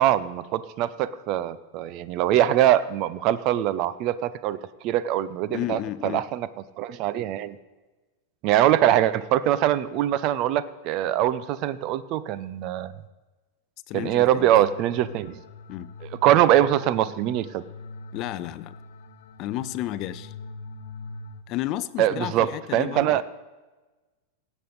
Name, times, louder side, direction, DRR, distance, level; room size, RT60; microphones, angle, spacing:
voice 1, 0.0-6.5 6.8-7.6 8.4-12.9 13.9-15.4 16.2-17.6 22.0-23.2, right 12 dB, 40° right, 0.6 m, -23 dB
voice 2, 5.5-6.2 13.9-14.5 15.7-15.9 18.1-18.7 19.4-20.3 21.5-23.2, left 14 dB, 40° left, 0.5 m, -32 dB
sound 1, 14.0-21.4, left 3 dB, 55° left, 0.9 m, -42 dB
16.5 x 8.2 x 4.0 m
figure-of-eight pair, 90°, 0 cm